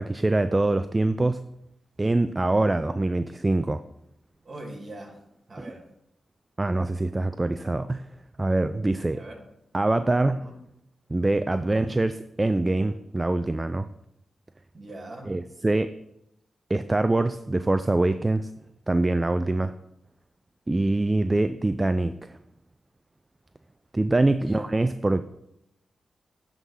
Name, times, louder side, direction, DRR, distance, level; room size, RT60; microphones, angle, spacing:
voice 1, 0.0-1.4 2.0-3.8 5.6-5.7 6.6-8.1 8.4-9.2 9.7-10.5 11.1-13.9 15.3-15.9 16.7-18.5 18.9-19.7 20.7-22.4 23.9-25.2, right 2 dB, 25° right, 11 dB, 0.4 m, -24 dB
voice 2, 4.4-5.2 5.5-5.8 9.1-9.4 10.4-10.5 11.5-11.9 14.7-15.3 24.4-24.7, right 1 dB, 45° right, 2 dB, 2.2 m, -42 dB
9.0 x 3.8 x 5.6 m, 0.82 s
supercardioid pair, 45°, 0 cm